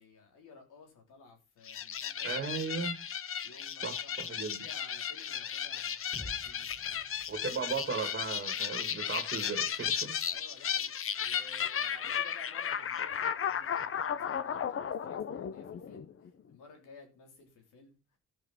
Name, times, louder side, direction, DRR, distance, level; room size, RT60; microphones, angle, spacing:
voice 1, 0.0-2.6 3.2-7.0 10.3-18.2, left 3 dB, 85° left, 3.7 m, -56 dB
sound 1, 1.6-16.3, left 8 dB, 45° left, 0.8 m, -35 dB
voice 2, 2.2-3.0 3.8-4.6 7.3-10.1, right 5 dB, 35° right, 2.0 m, -36 dB
sound 2, 6.1-10.0, equal, ahead, 3.3 m, -52 dB
13.0 x 5.3 x 5.7 m
cardioid pair, 90°, 30 cm